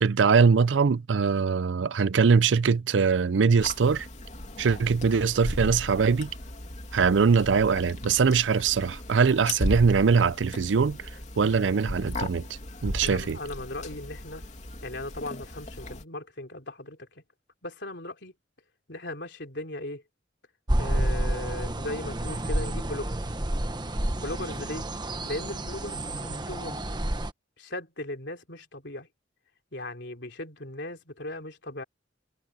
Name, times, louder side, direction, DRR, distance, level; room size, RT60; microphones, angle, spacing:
voice 1, 0.0-4.1 4.6-6.3 6.9-11.0 11.4-12.4 12.8-13.4, right 5 dB, 80° right, 0.5 m, -22 dB
sound 1, 3.6-16.0, left 1 dB, 40° left, 2.9 m, -36 dB
voice 2, 13.0-14.4 14.8-17.2 17.6-18.3 18.9-20.0 20.8-23.2 24.1-24.9 25.2-26.9 27.6-29.1 29.7-31.8, left 1 dB, 65° left, 3.5 m, -37 dB
sound 2, 20.7-27.3, right 1 dB, 25° right, 1.2 m, -30 dB
head